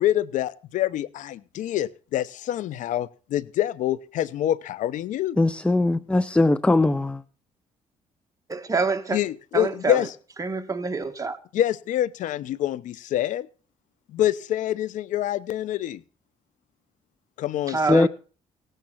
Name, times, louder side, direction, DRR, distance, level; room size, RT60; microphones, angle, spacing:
voice 1, 0.0-5.4 9.1-10.1 11.5-13.5 14.1-16.0 17.4-18.1, left 12 dB, 75° left, 0.8 m, -26 dB
voice 2, 5.4-7.2 17.9-18.1, left 2 dB, 10° left, 0.7 m, -20 dB
voice 3, 8.5-9.2 9.5-10.1 10.4-11.4 17.7-18.1, right 4 dB, 25° right, 2.1 m, -26 dB
18.0 x 9.1 x 5.9 m
cardioid pair, 85°, 13 cm